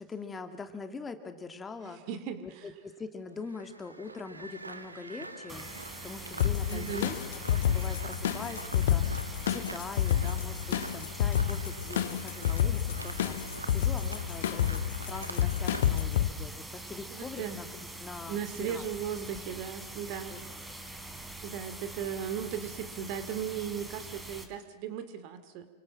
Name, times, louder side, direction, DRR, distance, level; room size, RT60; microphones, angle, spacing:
voice 1, 0.0-2.0 2.4-5.7 6.0-7.2 7.5-18.9 20.3-20.4 20.7-20.8, left 4 dB, 15° left, 7 dB, 2.3 m, -43 dB
voice 2, 1.8-2.4 6.7-7.1 12.6-12.7 17.1-17.6 18.3-20.3 21.4-25.7, right 9 dB, 45° right, 11 dB, 2.4 m, -37 dB
sound 1, 3.3-16.1, right 3 dB, 80° right, 1.7 m, -46 dB
sound 2, 5.5-24.4, right 2 dB, 10° right, 3.6 m, -44 dB
sound 3, 6.4-16.3, left 10 dB, 60° left, 1.4 m, -29 dB
30.0 x 25.5 x 7.4 m, 1.1 s
figure-of-eight pair, 90°, 0 cm